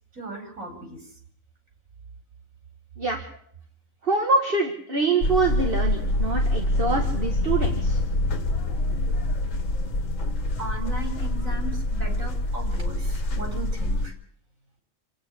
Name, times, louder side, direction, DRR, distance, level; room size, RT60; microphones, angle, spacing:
voice 1, 0.1-1.0 10.6-14.1, right 2 dB, 85° right, 4 dB, 5.2 m, -37 dB
voice 2, 4.0-8.0, right 3 dB, 45° right, 2 dB, 2.2 m, -25 dB
sound 1, 5.2-14.1, left 1 dB, 70° left, 1.8 m, -25 dB
28.0 x 9.3 x 9.9 m, 0.62 s
omnidirectional pair, 1.4 m